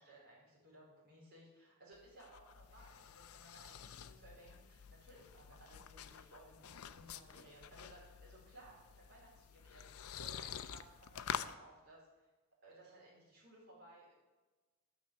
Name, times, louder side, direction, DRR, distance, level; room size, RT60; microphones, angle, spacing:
voice 1, 0.0-12.3 12.6-14.1, right 1 dB, 45° right, -6 dB, 4.6 m, -60 dB
sound 1, 1.9-11.5, left 8 dB, 85° left, 0.5 m, -48 dB
12.5 x 6.3 x 7.0 m, 1.2 s
head